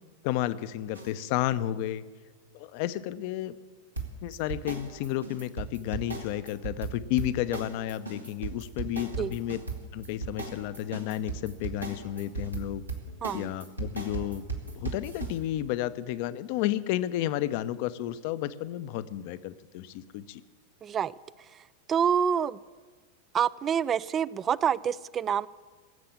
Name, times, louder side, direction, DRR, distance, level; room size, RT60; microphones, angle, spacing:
voice 1, 0.2-2.0 2.5-3.5 4.2-9.6 9.9-12.8 13.3-14.4 14.8-20.4, left 13 dB, 45° left, 14 dB, 0.6 m, -32 dB
sound 1, 0.9-1.1 4.0-15.4, right 3 dB, 85° right, 2.2 m, -36 dB
voice 2, 13.2-13.5 20.8-21.1 21.9-22.6 23.3-25.5, right 8 dB, 25° right, 21 dB, 0.4 m, -27 dB
18.5 x 7.6 x 8.6 m, 1.4 s
figure-of-eight pair, 90°, 0 cm